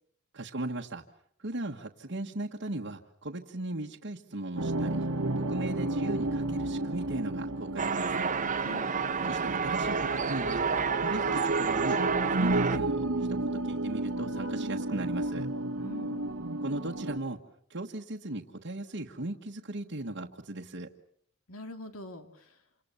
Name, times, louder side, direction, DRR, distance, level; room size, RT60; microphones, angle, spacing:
voice 1, 0.3-1.0 1.4-5.1 5.3-8.3 9.3-10.6 11.0-12.0 12.3-15.5 16.6-17.4 17.7-20.9, right 2 dB, 60° right, -1 dB, 1.5 m, -37 dB
sound 1, 4.6-17.2, right 2 dB, 85° right, 1.5 m, -32 dB
sound 2, 7.8-12.8, right 5 dB, 35° right, 1.0 m, -30 dB
voice 2, 8.6-8.9 15.8-16.3 21.5-22.6, left 1 dB, 85° left, 6 dB, 3.3 m, -44 dB
28.5 x 27.0 x 6.9 m, 0.65 s
head